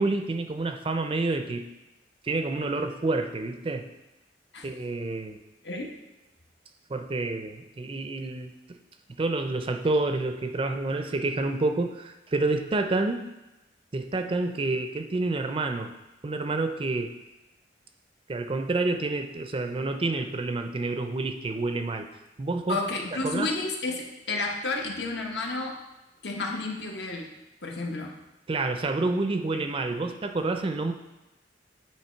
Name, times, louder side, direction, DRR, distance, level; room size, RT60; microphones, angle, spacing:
voice 1, 0.0-1.7 2.2-3.9 4.6-5.4 6.9-8.8 9.2-13.3 13.9-15.9 16.2-17.2 18.3-22.1 22.4-22.8 23.2-23.5 28.5-30.9, right 2 dB, 30° right, 6 dB, 0.4 m, -28 dB
voice 2, 22.7-25.7 26.2-27.3 27.6-28.1 29.5-29.7, left 3 dB, 70° left, 0 dB, 1.1 m, -31 dB
8.8 x 3.0 x 4.4 m, 1.0 s
head